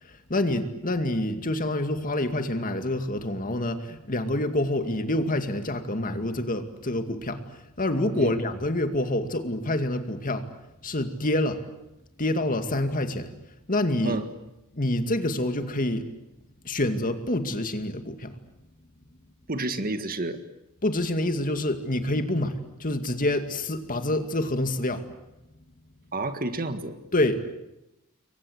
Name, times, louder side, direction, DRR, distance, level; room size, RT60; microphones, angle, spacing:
voice 1, 0.0-10.5 10.8-11.6 12.2-13.3 13.7-14.2 14.7-16.1 16.6-18.3 20.8-25.1 27.1-27.5, left 1 dB, 40° left, 7 dB, 2.3 m, -27 dB
voice 2, 19.5-20.4 26.1-27.0, right 2 dB, 40° right, 9 dB, 1.8 m, -30 dB
28.5 x 23.5 x 8.1 m, 0.90 s
head